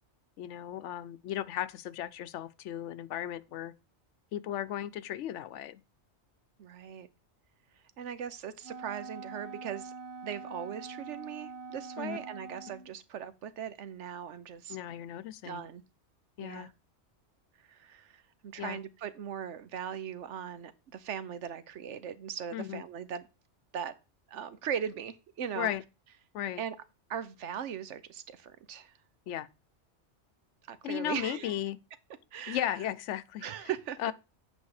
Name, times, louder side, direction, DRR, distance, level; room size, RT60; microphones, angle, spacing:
voice 1, 0.4-3.7 4.3-5.8 12.0-12.2 14.7-15.6 16.4-16.7 18.6-18.8 22.5-22.8 25.6-25.8 26.3-26.6 29.3-29.5 30.8-31.8 32.5-33.5 34.0-34.1, left 11 dB, 85° left, 0.9 m, -35 dB
voice 2, 6.6-7.1 8.0-9.9 10.2-14.8 15.4-15.8 16.4-16.7 17.6-23.3 23.7-23.9 24.3-25.7 26.6-26.8 27.1-28.9 30.7-31.5 32.3-32.8 33.4-34.0, right 8 dB, 85° right, 1.1 m, -39 dB
Wind instrument woodwind instrument, 8.6-12.9, right 4 dB, 65° right, 1.4 m, -44 dB
8.3 x 5.0 x 4.7 m
omnidirectional pair, 1.2 m